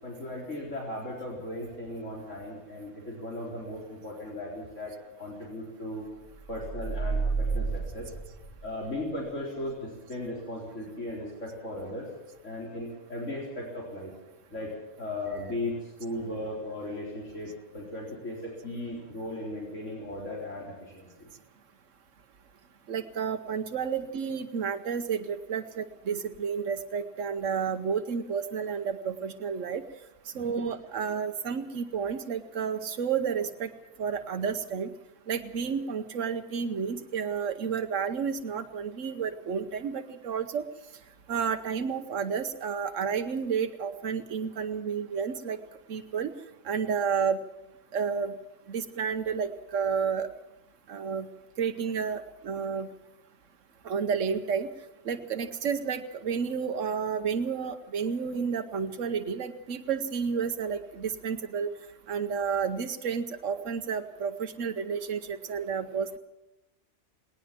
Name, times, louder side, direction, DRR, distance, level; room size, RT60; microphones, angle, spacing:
voice 1, 0.0-4.9 5.2-6.1 6.5-8.1 8.6-12.0 12.4-14.1 14.5-21.1 30.3-30.5, left 1 dB, 80° left, -3 dB, 4.4 m, -37 dB
sound 1, 6.4-9.0, right 4 dB, 35° left, 3.2 m, -31 dB
voice 2, 22.9-29.8 30.3-33.7 34.0-34.9 35.3-40.6 41.3-45.6 45.9-46.3 46.6-47.4 47.9-48.3 48.7-50.3 50.9-51.3 51.6-52.9 53.8-54.7 55.0-61.7 62.1-66.2, right 6 dB, 90° right, 7 dB, 1.3 m, -31 dB
19.5 x 19.0 x 7.5 m, 0.95 s
omnidirectional pair, 1.3 m